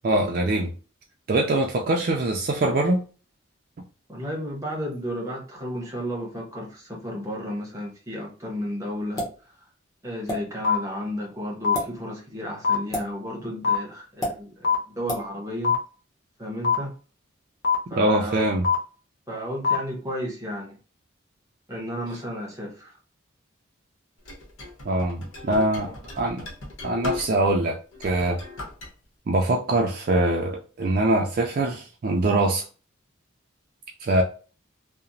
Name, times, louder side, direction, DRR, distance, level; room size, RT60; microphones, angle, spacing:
voice 1, 0.0-0.7 1.3-3.0 18.0-18.6 24.8-26.4 26.8-27.8 28.0-28.4 29.3-32.6 34.0-34.2, right 2 dB, 45° right, 0.3 m, -23 dB
voice 2, 4.1-9.3 10.0-15.7 16.4-16.9 17.9-18.5 19.3-20.8 21.7-23.0 25.8-26.0, equal, 15° right, 0.8 m, -33 dB
sound 1, 9.2-9.4 10.3-10.4 11.6-11.9 12.9-13.1 14.2-14.4 15.1-15.3, left 1 dB, 20° left, 0.7 m, -28 dB
sound 2, 10.6-10.7 11.6-11.7 12.6-12.7 13.6-13.7 14.6-14.7 15.6-15.7 16.6-16.7 17.6-17.7 18.6-18.7 19.6-19.7, left 6 dB, 55° left, 0.6 m, -20 dB
sound 3, 24.2-27.6 27.9-28.9, left 3 dB, 80° left, 0.9 m, -37 dB
2.8 x 2.0 x 2.5 m
head